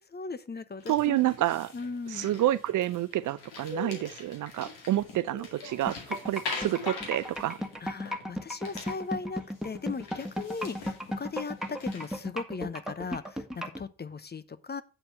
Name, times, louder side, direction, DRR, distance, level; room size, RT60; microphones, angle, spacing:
voice 1, 0.0-1.3 1.7-2.3 7.8-14.8, left 4 dB, 25° left, 0.8 m, -38 dB
sound 1, 0.8-8.4 8.6-9.3 9.5-9.6 10.0-12.2, left 3 dB, 75° left, 2.2 m, -42 dB
voice 2, 0.9-1.7 2.1-7.6, right 13 dB, 55° right, 0.6 m, -29 dB
sound 2, 5.9-13.8, equal, ahead, 1.7 m, -34 dB
8.8 x 4.3 x 6.6 m
hypercardioid pair, 45°, 38 cm